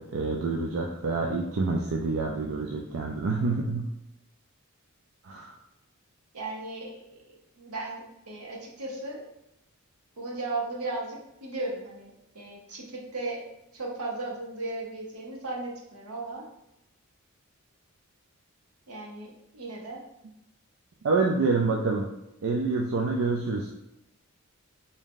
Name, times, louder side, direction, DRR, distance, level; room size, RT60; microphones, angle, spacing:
voice 1, 0.0-3.9 5.2-5.5 21.0-22.1 22.4-23.7, right 3 dB, 65° right, 0 dB, 0.4 m, -27 dB
voice 2, 6.3-7.0 7.6-9.2 10.2-13.4 13.7-16.5 18.9-20.0, right 2 dB, 85° right, -1 dB, 1.0 m, -36 dB
3.6 x 2.6 x 3.7 m, 0.85 s
head